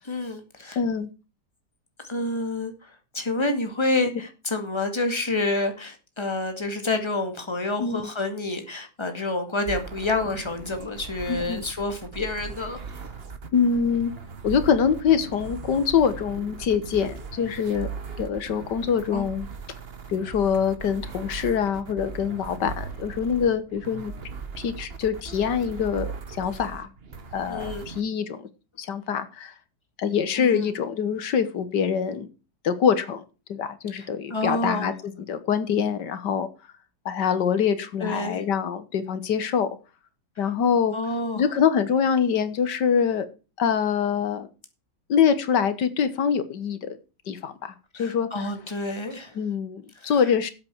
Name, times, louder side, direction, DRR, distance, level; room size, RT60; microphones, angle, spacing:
voice 1, 0.1-0.8 2.0-12.8 19.1-19.2 27.5-27.9 30.4-30.7 33.9-34.9 38.0-38.4 40.9-41.4 47.9-49.4 50.0-50.1, left 2 dB, 15° left, 6 dB, 2.1 m, -28 dB
voice 2, 0.8-1.1 7.8-8.1 11.3-11.6 13.5-14.1 14.4-17.9 18.2-19.5 20.1-24.1 24.6-26.9 27.3-28.5 28.8-29.5 30.0-32.3 32.6-33.2 33.5-36.5 37.1-39.7 40.4-40.9 41.4-43.3 43.6-44.5 45.1-47.0 47.3-48.3 49.4-50.5, left 7 dB, 90° left, 12 dB, 1.9 m, -24 dB
sound 1, 9.7-28.0, right 5 dB, 40° right, 1.3 m, -38 dB
13.0 x 8.1 x 4.6 m, 0.32 s
omnidirectional pair, 1.8 m